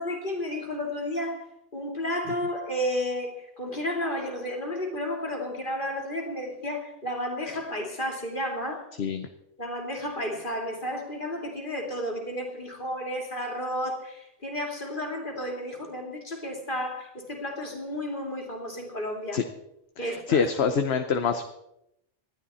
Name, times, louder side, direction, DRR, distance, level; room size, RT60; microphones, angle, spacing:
voice 1, 0.0-8.9 9.6-19.4 20.0-20.5, equal, 45° left, 2 dB, 2.8 m, -32 dB
voice 2, 20.0-21.4, left 6 dB, 60° left, 7 dB, 1.1 m, -25 dB
19.5 x 12.0 x 4.2 m, 0.82 s
omnidirectional pair, 1.2 m